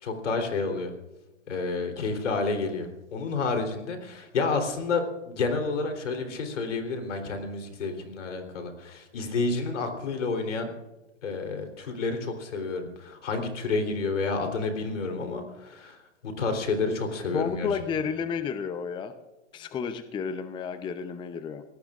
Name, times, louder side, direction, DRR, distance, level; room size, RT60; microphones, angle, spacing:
voice 1, 0.0-0.9 1.5-10.7 11.2-16.0 16.2-17.7, left 3 dB, 75° left, 5 dB, 3.7 m, -30 dB
voice 2, 17.3-19.1 19.5-21.6, left 6 dB, 15° left, 10 dB, 0.7 m, -31 dB
23.5 x 17.5 x 2.5 m, 1.0 s
hypercardioid pair, 130°, 36 cm